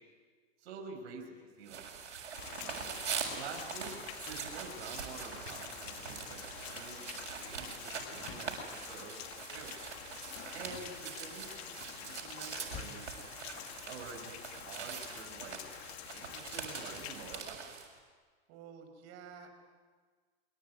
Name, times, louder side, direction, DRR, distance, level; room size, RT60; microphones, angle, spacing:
voice 1, 0.6-2.2 3.3-3.9 4.3-9.7 10.5-13.2 13.8-14.4 14.6-15.6 16.1-17.7, right 5 dB, 60° right, 1 dB, 5.8 m, -48 dB
sound 1, 1.7-17.9, right 6 dB, 90° right, 7.0 m, -43 dB
Rain, 2.4-17.4, left 12 dB, 65° left, 2.3 m, -48 dB
voice 2, 2.5-2.9 18.5-19.5, right 7 dB, 45° right, 6 dB, 5.8 m, -51 dB
Door, 8.1-8.7 9.8-11.5 12.7-13.2, left 8 dB, 40° left, 2.8 m, -50 dB
25.0 x 24.5 x 9.7 m, 1.5 s
hypercardioid pair, 115°, 34 cm